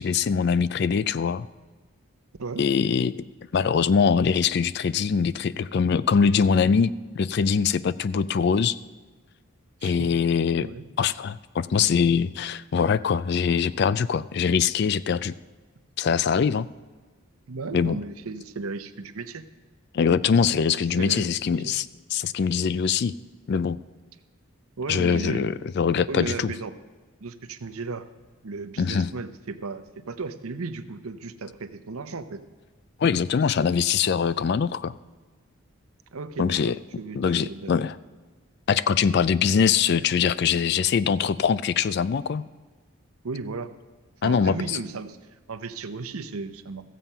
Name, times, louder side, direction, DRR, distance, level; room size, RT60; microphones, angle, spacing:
voice 1, 0.0-1.5 2.6-3.2 3.5-8.8 9.8-10.7 11.0-15.3 16.0-16.7 17.7-18.0 19.9-23.2 23.5-23.8 24.9-26.5 28.8-29.1 33.0-34.9 36.4-36.8 37.1-37.9 38.7-42.5 44.2-44.8, left 6 dB, 50° left, 17 dB, 0.3 m, -23 dB
voice 2, 17.5-19.4 21.0-21.7 24.8-25.5 26.1-26.7 27.2-28.1 28.4-32.4 36.1-37.7 43.2-43.7 44.2-45.2 45.5-46.9, right 3 dB, 85° right, 11 dB, 0.7 m, -35 dB
15.0 x 7.4 x 5.5 m, 1.4 s
head